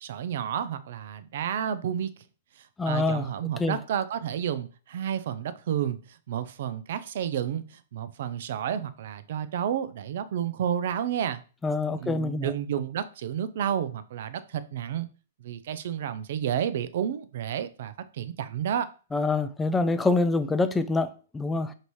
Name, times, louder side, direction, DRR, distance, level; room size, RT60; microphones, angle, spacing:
voice 1, 0.0-2.1 2.9-6.0 6.3-11.4 12.0-15.1 15.4-18.9, right 9 dB, 60° right, 0.4 m, -31 dB
voice 2, 2.8-3.3 3.6-3.8 11.6-12.5 19.1-21.7, left 3 dB, 10° left, 0.4 m, -26 dB
5.2 x 2.7 x 3.1 m
hypercardioid pair, 130°, 0 cm